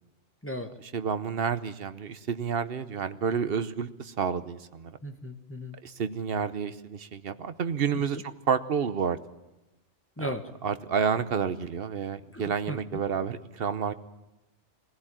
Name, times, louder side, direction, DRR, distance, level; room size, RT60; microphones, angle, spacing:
voice 1, 0.4-0.7 5.0-5.8 7.9-8.2 10.2-10.5 12.3-13.0, equal, 10° left, 6 dB, 1.1 m, -36 dB
voice 2, 0.9-5.0 5.8-8.2 8.5-9.2 10.2-10.3 10.6-13.9, right 6 dB, 55° right, 12 dB, 1.1 m, -29 dB
21.5 x 16.0 x 8.9 m, 1.0 s
omnidirectional pair, 1.2 m